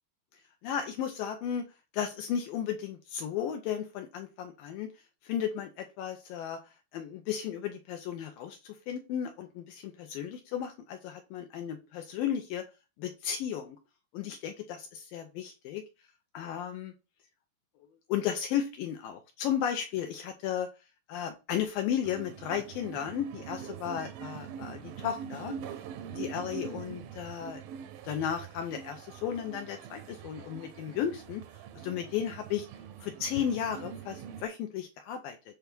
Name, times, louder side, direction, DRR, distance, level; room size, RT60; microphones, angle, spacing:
voice 1, 0.6-1.6 1.9-4.9 5.2-6.6 6.9-12.6 13.0-13.8 14.1-15.8 16.3-16.9 18.1-20.7 21.1-25.6 26.1-27.6 28.0-31.4 31.8-32.7 33.0-35.6, left 9 dB, 75° left, 5 dB, 2.2 m, -34 dB
sound 1, 22.0-34.5, right 8 dB, 75° right, 2.4 m, -43 dB
7.8 x 3.4 x 6.0 m, 0.28 s
omnidirectional pair, 4.7 m